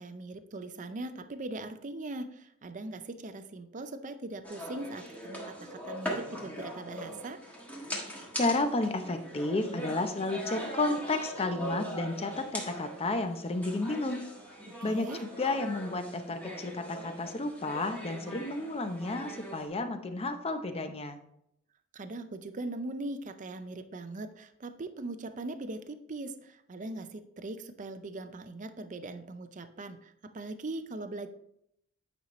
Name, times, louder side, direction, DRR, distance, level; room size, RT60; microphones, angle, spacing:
voice 1, 0.0-7.4 14.6-15.2 21.9-31.3, right 2 dB, 35° right, 9 dB, 0.5 m, -40 dB
sound 1, 4.4-19.7, equal, 5° left, 1.4 m, -41 dB
voice 2, 8.4-14.2 14.8-21.2, left 2 dB, 30° left, 8 dB, 0.7 m, -32 dB
9.2 x 5.3 x 3.1 m, 0.75 s
head